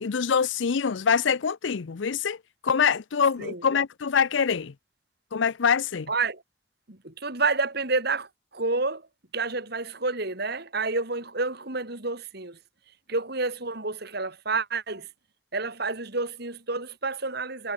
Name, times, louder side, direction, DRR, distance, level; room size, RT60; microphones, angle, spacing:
voice 1, 0.0-2.4 2.6-4.7 5.3-6.1, left 6 dB, 65° left, 0.5 m, -24 dB
voice 2, 6.1-6.4 6.9-9.0 9.3-12.6 13.1-15.1 15.5-17.7, right 3 dB, 55° right, 3.1 m, -29 dB
head